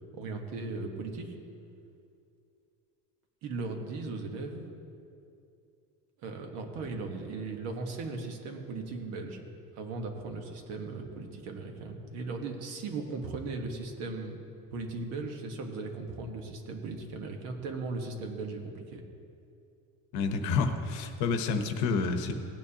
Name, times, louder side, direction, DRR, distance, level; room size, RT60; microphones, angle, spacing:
voice 1, 0.1-1.4 3.4-4.7 6.2-9.5 9.7-14.4 14.7-19.0, right 3 dB, 55° right, 3 dB, 1.2 m, -37 dB
voice 2, 20.1-22.3, left 4 dB, 65° left, 6 dB, 1.0 m, -29 dB
18.0 x 9.2 x 2.9 m, 2.6 s
cardioid pair, 180°, 31 cm